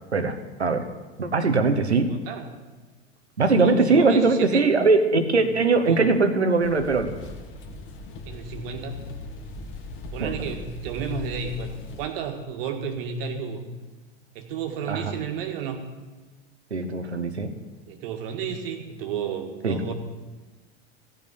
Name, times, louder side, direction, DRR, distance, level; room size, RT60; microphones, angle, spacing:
voice 1, 0.1-0.9 1.2-2.1 3.4-7.1 10.2-10.3 14.9-15.1 16.7-17.5 19.6-19.9, right 3 dB, 90° right, 9 dB, 1.0 m, -21 dB
voice 2, 2.1-2.5 3.5-4.7 5.3-5.4 5.8-6.0 8.3-9.0 10.1-13.6 14.4-15.8 17.9-19.9, right 7 dB, 60° right, 5 dB, 1.8 m, -32 dB
sound 1, 6.6-12.0, left 2 dB, 40° left, 1.7 m, -39 dB
15.5 x 5.5 x 8.4 m, 1.3 s
figure-of-eight pair, 85°, 32 cm